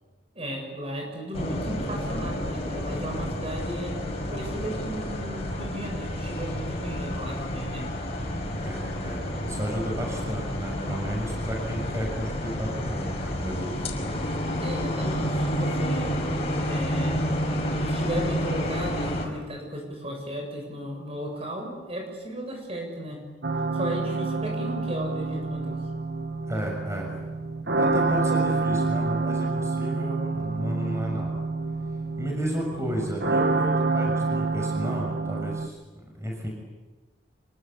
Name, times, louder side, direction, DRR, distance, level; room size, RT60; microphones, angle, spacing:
voice 1, 0.4-4.0 4.3-7.9 14.6-16.2 16.7-17.3 17.7-23.2 23.7-25.8, equal, 30° right, 2 dB, 6.9 m, -35 dB
sound 1, 1.3-19.3, equal, 30° left, 5.8 m, -30 dB
voice 2, 8.6-13.9 26.5-27.1 27.8-31.4 32.2-36.5, equal, 15° right, 0 dB, 6.7 m, -32 dB
sound 2, 23.4-35.7, right 3 dB, 60° right, 1.5 m, -27 dB
27.5 x 24.0 x 8.5 m, 1.3 s
head